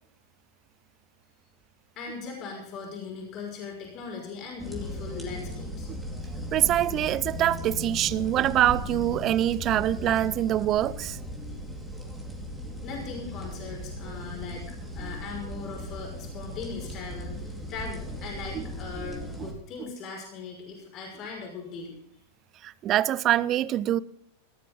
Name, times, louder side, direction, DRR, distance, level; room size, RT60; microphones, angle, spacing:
voice 1, 2.0-5.9 12.8-21.9, left 5 dB, 35° left, 5.8 m, -39 dB
sound 1, 4.6-19.5, equal, ahead, 4.1 m, -37 dB
voice 2, 6.5-11.2 18.5-18.6 19.4-19.5 22.6-24.0, right 12 dB, 35° right, 0.6 m, -24 dB
18.5 x 13.5 x 3.8 m
figure-of-eight pair, 90°, 0 cm